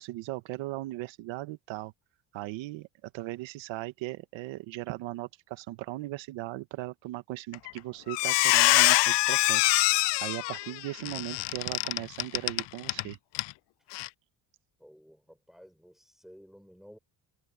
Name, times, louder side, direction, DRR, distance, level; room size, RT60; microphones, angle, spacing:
voice 1, 0.0-1.9 2.3-9.7 10.2-13.2, right 17 dB, 90° right, 1.4 m, -38 dB
Squeak, 7.5-7.8 8.1-13.0 13.3-13.5 13.9-14.1, left 21 dB, 70° left, 0.5 m, -24 dB
voice 2, 14.8-17.0, equal, ahead, 5.4 m, -54 dB
cardioid pair, 140°, 45 cm